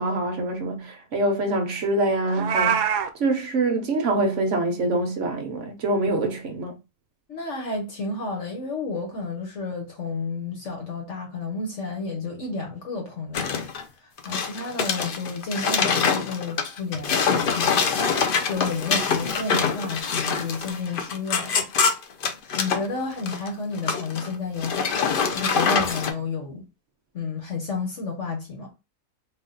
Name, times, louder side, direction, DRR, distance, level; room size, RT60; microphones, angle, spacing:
voice 1, 0.0-2.9 3.2-6.7, right 2 dB, 55° right, 1.0 m, -25 dB
Meow, 2.3-3.1, right 7 dB, 90° right, 1.2 m, -23 dB
voice 2, 7.3-13.4 14.0-17.9 18.5-21.7 22.6-26.6 27.1-28.7, left 4 dB, 50° left, 1.2 m, -31 dB
sound 1, 13.3-13.8 14.2-22.8 23.2-23.5 23.8-24.3 24.6-26.1, left 5 dB, 80° left, 0.4 m, -24 dB
3.5 x 2.5 x 3.8 m
omnidirectional pair, 1.7 m